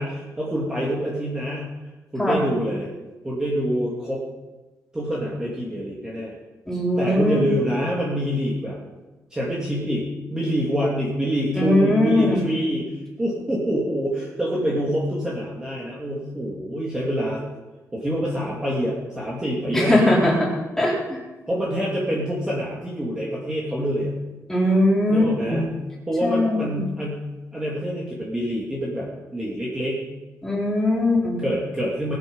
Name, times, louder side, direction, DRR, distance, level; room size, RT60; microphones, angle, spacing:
voice 1, 0.0-1.7 2.1-2.9 3.2-4.2 4.9-6.4 7.0-8.8 9.3-17.4 17.9-20.2 21.5-24.1 25.1-25.8 26.1-30.0 31.4-32.1, equal, 10° right, -5 dB, 2.6 m, -26 dB
voice 2, 6.7-7.4 11.6-12.5 19.7-20.5 20.8-21.2 24.5-25.6 26.2-26.8 30.4-31.4, left 1 dB, 5° left, -4 dB, 4.0 m, -20 dB
20.0 x 9.9 x 5.5 m, 1.2 s
wide cardioid pair, 165°, 6 cm